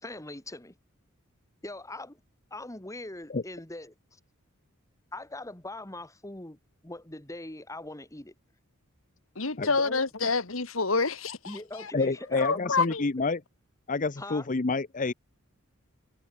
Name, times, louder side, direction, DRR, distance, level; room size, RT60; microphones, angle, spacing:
voice 1, 0.0-0.8 1.6-2.2 2.5-4.2 5.1-8.3 9.8-10.3 11.5-12.8 14.2-14.5, left 2 dB, 15° left, 2.0 m, -41 dB
voice 2, 9.4-11.9 12.4-13.0, left 4 dB, 70° left, 2.0 m, -28 dB
voice 3, 11.9-13.4 13.9-15.1, left 3 dB, 40° left, 0.8 m, -28 dB
head